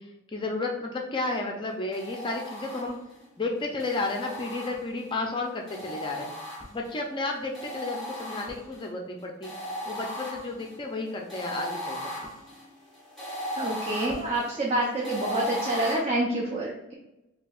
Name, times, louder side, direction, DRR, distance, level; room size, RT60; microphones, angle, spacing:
voice 1, 0.0-3.0 3.4-6.3 6.7-9.5 9.8-12.1, left 2 dB, 25° left, 1 dB, 0.4 m, -32 dB
sound 1, 1.9-3.2 3.8-5.1 5.7-7.0 7.5-8.9 9.4-16.0, equal, ahead, 1.1 m, -37 dB
voice 2, 13.6-16.9, right 1 dB, 30° right, -3 dB, 0.5 m, -27 dB
4.4 x 2.8 x 2.4 m, 0.95 s
head